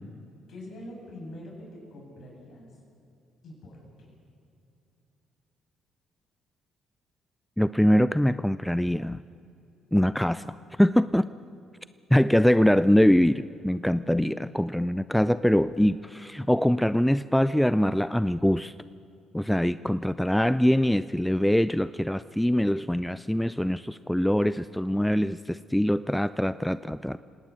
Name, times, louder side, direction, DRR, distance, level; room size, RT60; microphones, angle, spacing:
voice 1, 0.5-2.7 3.4-4.2, left 1 dB, 55° left, -1 dB, 7.5 m, -44 dB
voice 2, 7.6-9.2 9.9-10.4 10.8-11.3 12.1-18.7 19.3-27.2, equal, 5° left, 15 dB, 0.5 m, -23 dB
29.5 x 18.5 x 6.4 m, 2.7 s
hypercardioid pair, 45°, 0 cm